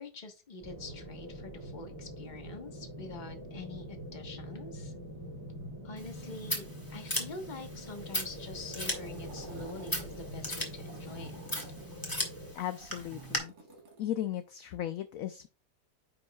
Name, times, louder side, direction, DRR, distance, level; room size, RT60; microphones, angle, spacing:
voice 1, 0.0-4.9 5.8-11.4, left 3 dB, 30° left, 5 dB, 1.1 m, -45 dB
sound 1, 0.6-12.5, equal, 25° right, 2.5 m, -44 dB
Scissors, 6.0-13.4, left 1 dB, 15° left, 1.5 m, -38 dB
sound 2, 8.9-10.0 10.8-11.9 12.5-14.1, right 4 dB, 75° right, 2.4 m, -52 dB
voice 2, 12.5-13.5 14.0-15.5, left 12 dB, 70° left, 10 dB, 0.8 m, -36 dB
9.6 x 5.4 x 2.3 m, 0.33 s
omnidirectional pair, 1.8 m